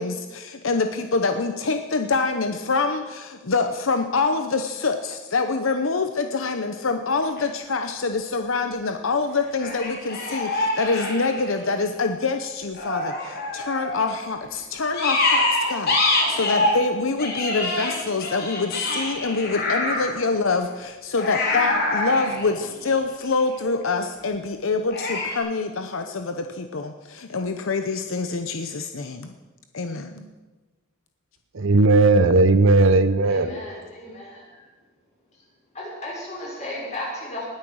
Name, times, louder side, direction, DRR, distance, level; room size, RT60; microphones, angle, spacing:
voice 1, 0.0-29.3 29.7-30.3, left 4 dB, 70° left, 0.8 m, -25 dB
sound 1, 7.2-7.4 9.6-11.8 12.7-14.2 14.9-16.8 17.2-20.2 21.2-23.4 24.9-25.4, left 2 dB, 50° left, 3.9 m, -25 dB
voice 2, 31.5-33.6, right 3 dB, 65° right, 0.8 m, -16 dB
voice 3, 33.2-34.7 35.3-35.4 35.7-37.4, left 1 dB, 35° left, 6.0 m, -35 dB
19.0 x 8.8 x 6.3 m
head